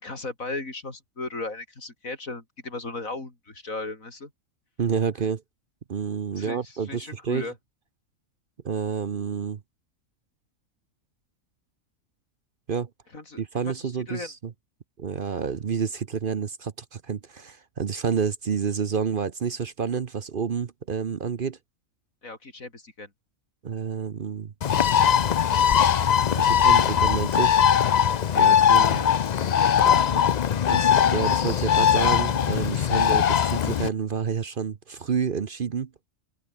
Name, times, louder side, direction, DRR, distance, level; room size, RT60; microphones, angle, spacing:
voice 1, 0.0-4.3 6.3-7.6 13.1-14.3 22.2-23.1 28.3-28.6 28.9-30.9 32.7-33.2, left 3 dB, 85° left, 4.8 m, -37 dB
voice 2, 4.8-5.4 5.9-7.5 8.6-9.6 12.7-12.9 13.4-14.3 15.0-21.6 23.6-24.5 26.3-27.6 28.4-29.0 30.7-35.9, right 6 dB, 45° right, 0.9 m, -29 dB
Bird, 24.6-33.9, left 8 dB, 55° left, 0.4 m, -20 dB
omnidirectional pair, 1.4 m